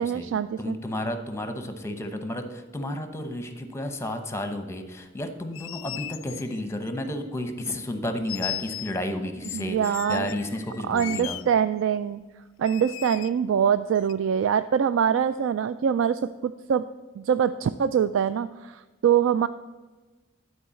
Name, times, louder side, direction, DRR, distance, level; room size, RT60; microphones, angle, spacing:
voice 1, 0.0-0.8 9.5-10.3 10.9-12.2 12.6-16.9 17.2-19.5, right 8 dB, 80° right, 12 dB, 0.3 m, -24 dB
voice 2, 0.6-11.4, left 1 dB, 15° left, 7 dB, 0.9 m, -32 dB
sound 1, 5.4-7.1 7.6-7.8 8.3-8.9 9.4-11.4 12.6-13.3 14.0-14.1, left 15 dB, 85° left, 0.3 m, -37 dB
11.5 x 4.6 x 6.9 m, 1.2 s
head